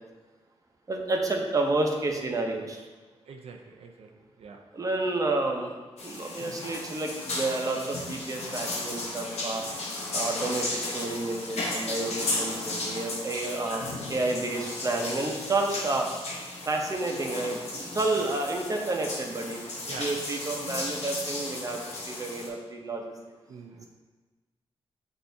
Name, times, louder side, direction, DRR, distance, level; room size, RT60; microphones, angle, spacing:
voice 1, 0.9-2.8 4.7-9.6 10.1-16.1 16.7-19.6 20.0-23.1, right 2 dB, 30° right, 2 dB, 0.7 m, -30 dB
voice 2, 3.3-4.7 19.9-20.2 23.5-23.9, right 4 dB, 75° right, 2 dB, 0.4 m, -44 dB
sound 1, 6.0-22.5, left 2 dB, 85° left, 0.8 m, -35 dB
7.7 x 2.6 x 2.7 m, 1.3 s
wide cardioid pair, 115°, 11 cm